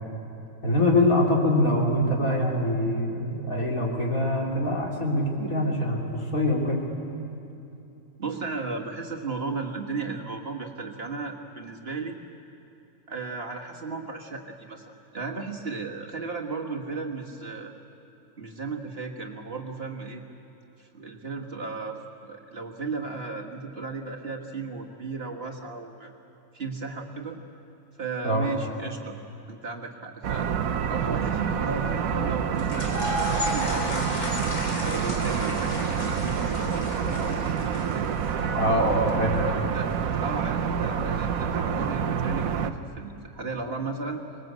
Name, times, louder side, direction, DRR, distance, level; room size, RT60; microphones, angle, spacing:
voice 1, 0.6-6.8 28.2-28.5 38.5-39.4, left 1 dB, 65° left, -2 dB, 3.9 m, -24 dB
voice 2, 8.2-12.2 13.1-14.9 15.1-17.7 18.4-20.2 20.8-26.1 26.5-27.4 28.0-29.2 29.5-30.5 30.9-32.9 33.2-38.1 39.3-39.9 40.2-44.2, right 4 dB, 40° right, 0 dB, 1.7 m, -35 dB
sound 1, 30.2-42.7, right 7 dB, 70° right, 1.3 m, -27 dB
sound 2, 32.6-38.6, left 1 dB, 85° left, 3.6 m, -33 dB
25.0 x 20.5 x 8.1 m, 2.9 s
omnidirectional pair, 1.6 m